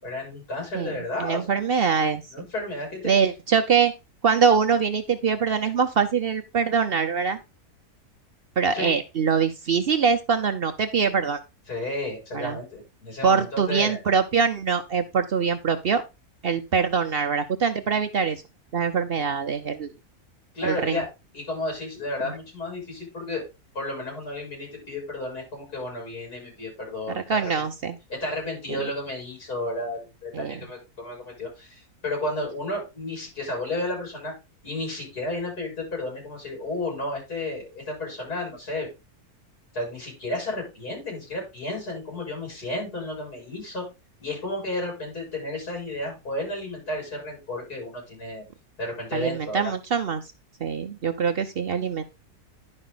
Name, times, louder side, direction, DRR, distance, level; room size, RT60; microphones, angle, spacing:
voice 1, 0.0-1.5 2.3-3.1 8.7-8.9 11.7-14.0 20.5-21.0 21.3-23.5 23.7-27.4 28.1-34.3 34.6-38.9 39.7-43.9 44.2-48.4 48.8-49.7, left 1 dB, 85° left, -1 dB, 7.3 m, -32 dB
voice 2, 1.2-2.2 3.0-3.9 4.2-7.4 8.6-11.4 12.3-12.6 13.2-16.0 16.4-18.4 18.7-19.9 20.6-21.0 22.2-22.3 27.1-28.0 28.7-28.8 30.3-30.5 49.1-50.2 50.6-52.0, right 6 dB, 55° right, 6 dB, 0.7 m, -23 dB
11.0 x 5.3 x 3.9 m, 0.26 s
omnidirectional pair, 1.6 m